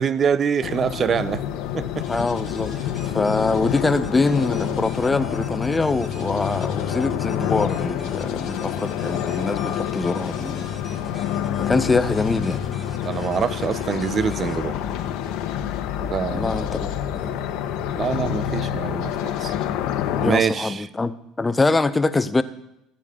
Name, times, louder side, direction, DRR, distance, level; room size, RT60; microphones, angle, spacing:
voice 1, 0.0-1.4 1.7-2.1 13.0-14.8 16.0-16.7 17.9-19.5 20.2-20.9, right 7 dB, 40° right, 16 dB, 0.5 m, -25 dB
sound 1, 0.6-20.3, left 10 dB, 65° left, 1.0 m, -27 dB
sound 2, 2.0-15.6, right 1 dB, 10° right, 3.0 m, -47 dB
voice 2, 2.1-2.7 3.0-10.7 11.6-12.7 16.3-16.8 17.1-17.4 20.1-22.4, left 3 dB, 20° left, 14 dB, 0.7 m, -23 dB
15.0 x 8.3 x 3.7 m, 0.84 s
hypercardioid pair, 65°, 0 cm